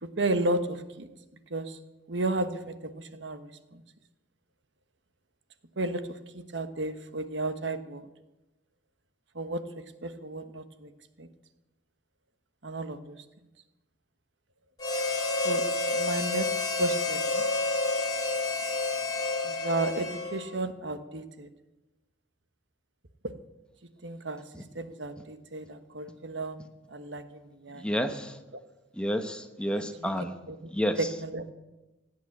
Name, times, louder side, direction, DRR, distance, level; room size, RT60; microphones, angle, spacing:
voice 1, 0.0-1.1 1.5-1.8 2.1-3.8 5.8-8.0 9.3-10.9 11.2-11.3 12.6-13.2 15.3-17.4 19.4-21.5 24.0-28.0 28.5-28.6 29.7-30.1 30.5-30.7 31.0-31.5, right 2 dB, 85° right, 10 dB, 1.3 m, -33 dB
Harmonica, 14.8-20.6, left 3 dB, 20° left, 2.4 m, -29 dB
voice 2, 27.8-28.3 29.0-30.3 30.7-31.0, equal, 5° left, 7 dB, 1.1 m, -30 dB
17.0 x 9.5 x 8.6 m, 1.0 s
head